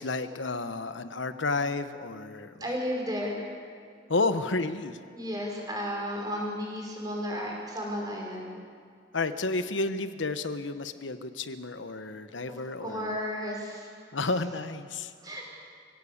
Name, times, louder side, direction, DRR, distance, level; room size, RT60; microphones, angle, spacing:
voice 1, 0.0-2.6 4.1-5.0 9.1-13.1 14.1-15.1, left 3 dB, 85° left, 11 dB, 1.1 m, -31 dB
voice 2, 2.6-3.5 5.1-8.5 12.8-13.9 15.2-15.5, equal, 20° right, -2 dB, 5.3 m, -33 dB
25.5 x 17.0 x 8.7 m, 2.2 s
head